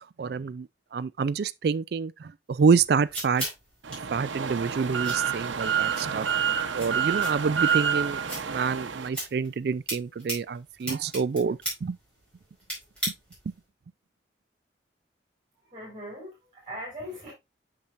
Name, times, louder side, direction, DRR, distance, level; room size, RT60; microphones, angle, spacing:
voice 1, 0.2-0.7 0.9-3.5 4.1-6.3 6.7-8.2 8.5-12.0, right 5 dB, 55° right, 0.3 m, -27 dB
sound 1, 2.6-13.6, right 1 dB, 5° left, 4.8 m, -39 dB
sound 2, 3.8-9.1, right 8 dB, 85° right, 0.8 m, -28 dB
voice 2, 15.6-17.3, equal, 25° right, 4.3 m, -40 dB
8.6 x 5.9 x 2.5 m
head